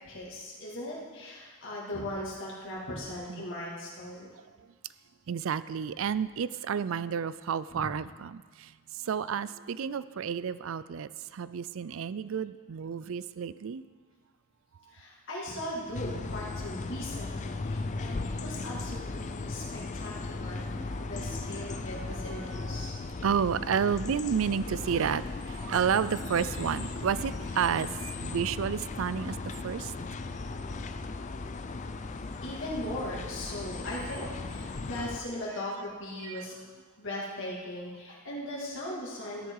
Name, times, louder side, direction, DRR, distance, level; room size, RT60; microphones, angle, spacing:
voice 1, 0.0-4.3 7.8-7.9 14.9-22.9 32.4-36.6 37.0-39.5, left 1 dB, 60° left, -5 dB, 2.5 m, -39 dB
voice 2, 5.3-8.7 9.1-13.8 20.7-20.8 21.2-21.4 21.7-22.9 23.2-29.4 29.6-29.9 36.2-36.4, right 7 dB, 65° right, 16 dB, 0.4 m, -31 dB
sound 1, 15.9-35.2, left 3 dB, 35° left, 0.5 m, -37 dB
13.5 x 10.0 x 4.8 m, 1.5 s
head